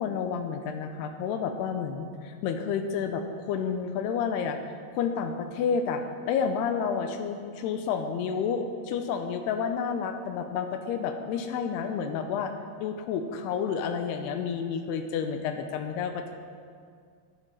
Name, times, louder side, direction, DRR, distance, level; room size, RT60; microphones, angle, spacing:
voice 1, 0.0-4.6 4.9-12.5 12.8-16.4, left 6 dB, 80° left, 6 dB, 2.6 m, -30 dB
12.0 x 12.0 x 5.6 m, 2.1 s
omnidirectional pair, 5.0 m